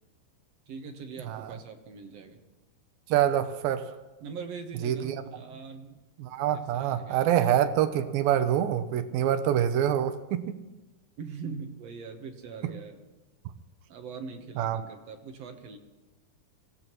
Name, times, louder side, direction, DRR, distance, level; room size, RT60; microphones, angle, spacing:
voice 1, 0.7-2.4 4.2-6.0 6.5-7.3 11.2-13.0 13.9-15.8, right 5 dB, 65° right, 4 dB, 1.7 m, -42 dB
voice 2, 3.1-3.9 4.8-5.2 6.2-10.6 12.6-12.7 14.6-14.8, right 10 dB, 80° right, 10 dB, 2.5 m, -26 dB
25.0 x 16.5 x 3.0 m, 1.1 s
omnidirectional pair, 4.2 m